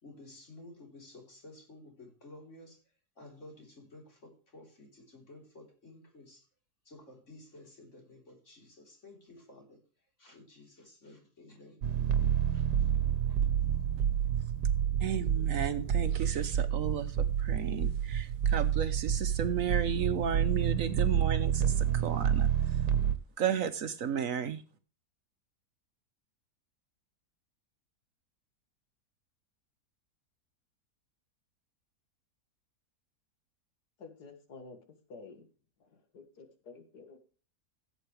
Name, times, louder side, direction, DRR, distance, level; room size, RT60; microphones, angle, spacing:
voice 1, 0.0-2.8 3.2-6.5 6.8-9.8 10.2-12.9 13.2-13.6, left 2 dB, 45° left, 4.2 m, -53 dB
sound 1, 11.8-23.2, right 9 dB, 90° right, 1.5 m, -29 dB
voice 2, 15.0-22.5 23.4-24.6, right 7 dB, 65° right, 1.1 m, -33 dB
voice 3, 34.0-35.5 35.8-37.2, left 4 dB, 80° left, 2.3 m, -51 dB
16.0 x 7.9 x 3.2 m
omnidirectional pair, 1.7 m